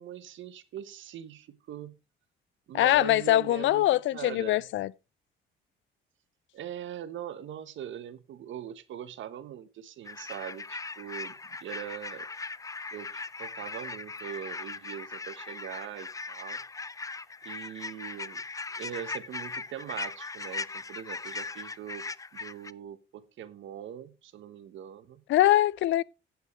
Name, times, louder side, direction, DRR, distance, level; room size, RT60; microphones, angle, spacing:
voice 1, 0.0-1.9 2.7-3.9 4.1-4.6 6.5-12.3 12.9-16.6 17.4-18.4 18.7-22.1 22.3-25.2, right 10 dB, 75° right, 1.3 m, -41 dB
voice 2, 2.7-4.9 25.3-26.0, left 14 dB, 70° left, 0.5 m, -23 dB
sound 1, 10.1-22.7, left 4 dB, 15° left, 0.4 m, -39 dB
15.0 x 8.3 x 3.3 m
cardioid pair, 90°, 20 cm